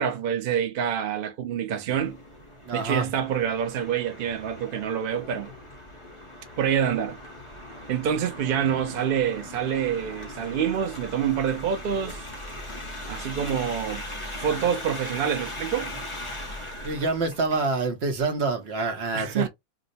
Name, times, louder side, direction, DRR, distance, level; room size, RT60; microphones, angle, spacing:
voice 1, 0.0-2.2 2.7-5.5 6.6-7.2 7.9-12.2 13.1-14.0 14.4-15.9 19.1-19.5, right 8 dB, 70° right, 0.5 m, -27 dB
sound 1, 1.9-17.6, left 1 dB, 30° left, 0.7 m, -39 dB
voice 2, 2.7-3.1 8.6-8.8 16.8-19.5, right 3 dB, 50° right, 1.0 m, -27 dB
2.8 x 2.1 x 3.9 m
omnidirectional pair, 1.5 m